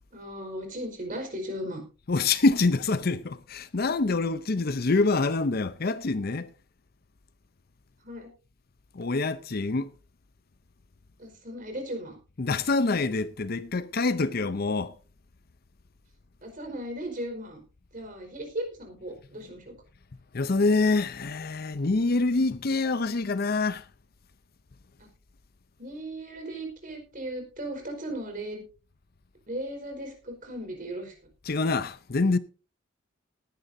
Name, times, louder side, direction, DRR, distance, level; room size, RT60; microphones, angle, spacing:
voice 1, 0.1-1.8 8.0-8.3 11.2-12.2 16.4-17.6 17.9-19.7 25.8-28.6 29.5-31.1, right 1 dB, 40° right, 4.7 m, -36 dB
voice 2, 2.1-6.5 8.9-9.9 12.4-15.0 20.3-23.8 31.5-32.4, left 3 dB, 50° left, 0.6 m, -26 dB
19.0 x 10.5 x 2.7 m
head